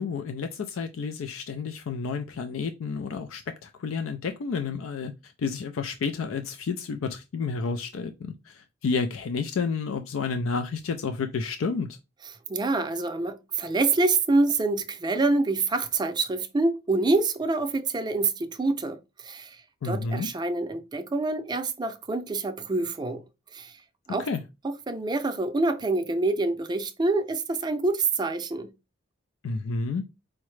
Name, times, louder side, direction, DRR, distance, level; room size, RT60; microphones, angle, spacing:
voice 1, 0.0-12.0 19.8-20.3 24.2-24.4 29.4-30.0, left 4 dB, 75° left, 0.4 m, -30 dB
voice 2, 12.5-19.6 19.8-23.2 23.5-23.7 24.1-24.3 24.6-28.7, right 3 dB, 20° right, 0.4 m, -26 dB
4.7 x 2.1 x 3.1 m
head